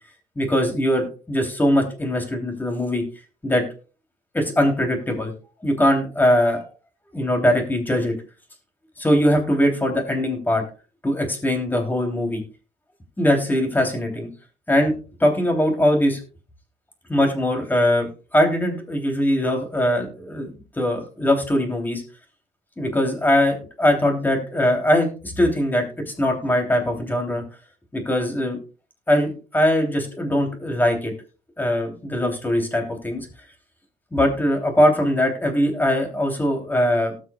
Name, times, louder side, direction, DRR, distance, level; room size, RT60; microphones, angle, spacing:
voice 1, 0.3-3.0 3.4-3.6 4.3-5.3 5.6-6.7 7.1-8.1 9.0-10.6 11.0-12.4 13.2-14.3 14.7-14.9 15.2-16.2 17.1-20.5 20.8-22.0 22.8-25.9 26.2-27.4 27.9-28.6 29.1-31.1 31.6-33.3 34.1-37.1, left 1 dB, 10° left, 3 dB, 3.1 m, -21 dB
18.5 x 6.3 x 2.3 m, 0.35 s
cardioid pair, 110°, 17 cm